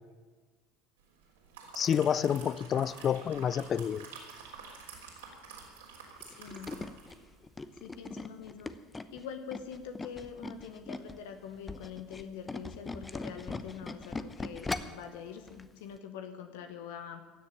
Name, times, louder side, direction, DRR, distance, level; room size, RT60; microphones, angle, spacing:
sound 1, 1.2-7.3 7.6-7.8, right 5 dB, 85° right, 3.5 m, -49 dB
voice 1, 1.7-4.1, left 8 dB, 40° left, 20 dB, 0.5 m, -29 dB
voice 2, 6.2-6.7 7.7-8.7 9.1-17.2, left 7 dB, 75° left, 8 dB, 1.1 m, -44 dB
Tools, 6.2-11.2 11.5-15.1 15.5-15.7 16.0-16.1, left 3 dB, 20° left, 0.8 m, -40 dB
16.0 x 6.9 x 10.0 m, 1.4 s
hypercardioid pair, 75°, 0 cm